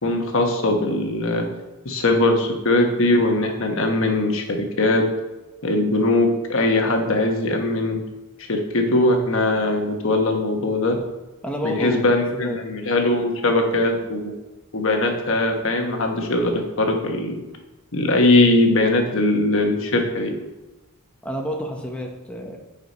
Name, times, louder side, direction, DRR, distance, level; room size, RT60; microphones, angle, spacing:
voice 1, 0.0-1.4 1.8-5.1 5.6-8.0 8.5-11.0 11.6-14.3 14.7-17.4 17.9-20.3, left 2 dB, 65° left, 3 dB, 1.2 m, -20 dB
voice 2, 11.4-12.0 12.3-12.6 21.2-22.6, equal, 5° left, 1 dB, 0.9 m, -29 dB
9.5 x 4.9 x 4.1 m, 1.1 s
head